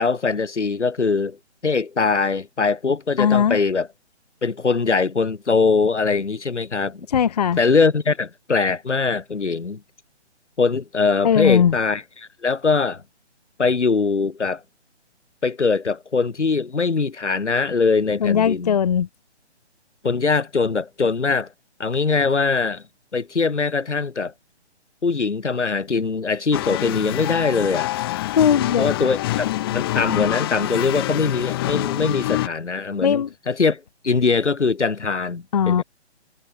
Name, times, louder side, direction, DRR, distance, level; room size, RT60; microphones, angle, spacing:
voice 1, 0.0-1.4 1.6-3.9 4.4-7.1 7.6-9.8 10.6-13.0 13.6-14.6 15.4-18.8 20.0-21.5 21.8-22.8 23.1-24.3 25.0-27.9 28.8-35.8, left 4 dB, 85° left, 3.7 m, -22 dB
voice 2, 3.2-3.6 7.1-7.6 11.2-11.7 18.2-19.1 28.4-28.9 33.0-33.3 35.5-35.8, left 8 dB, 35° left, 0.8 m, -18 dB
sound 1, 26.5-32.5, left 16 dB, 20° left, 1.4 m, -26 dB
hypercardioid pair, 155°, 34 cm